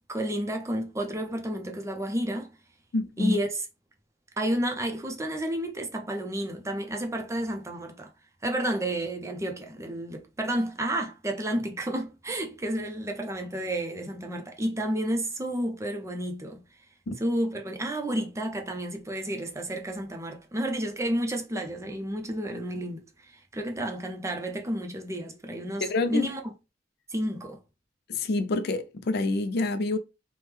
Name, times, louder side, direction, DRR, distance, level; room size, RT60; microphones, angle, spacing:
voice 1, 0.1-2.5 3.2-3.6 4.4-8.1 8.4-16.6 17.2-26.4 27.1-27.6, right 1 dB, 15° right, 0.5 m, -31 dB
voice 2, 2.9-3.4 17.1-17.2 25.8-26.3 28.1-30.0, left 2 dB, 55° left, 0.4 m, -27 dB
3.3 x 2.1 x 3.1 m
head